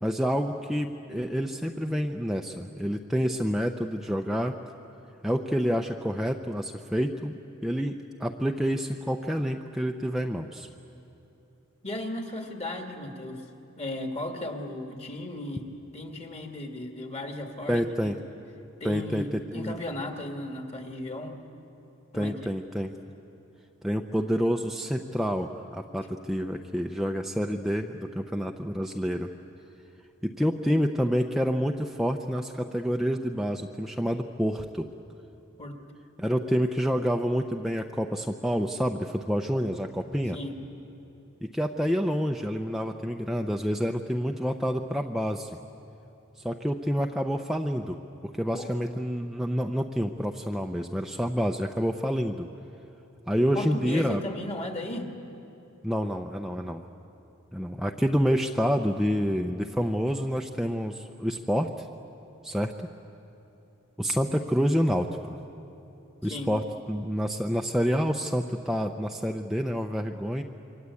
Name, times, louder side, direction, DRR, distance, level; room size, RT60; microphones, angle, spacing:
voice 1, 0.0-4.6 5.2-10.7 17.7-18.2 18.8-19.7 22.1-22.9 23.8-29.3 30.2-34.9 36.2-40.4 41.4-45.6 46.4-48.0 48.3-52.5 53.3-54.2 55.8-56.8 57.5-61.8 62.4-62.9 64.0-65.4 66.2-70.4, equal, ahead, 2 dB, 0.6 m, -28 dB
voice 2, 11.8-13.4 13.8-15.6 15.9-18.1 18.8-21.4 22.1-22.3 35.6-35.8 40.3-40.5 48.5-48.7 53.5-55.1 66.2-66.5, left 1 dB, 30° left, 3 dB, 2.3 m, -35 dB
27.0 x 24.0 x 8.5 m, 2.9 s
head